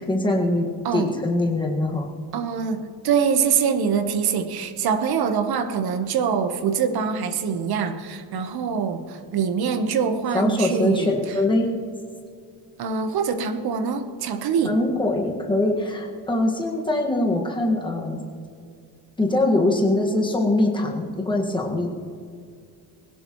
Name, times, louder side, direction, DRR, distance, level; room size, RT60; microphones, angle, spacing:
voice 1, 0.0-0.7 0.9-2.1 10.3-11.7 14.6-18.2 19.2-21.9, left 2 dB, 10° left, -1 dB, 1.7 m, -22 dB
voice 2, 2.3-11.1 12.8-14.8, right 6 dB, 65° right, 8 dB, 1.2 m, -24 dB
20.5 x 17.0 x 3.1 m, 2.2 s
cardioid pair, 170°, 41 cm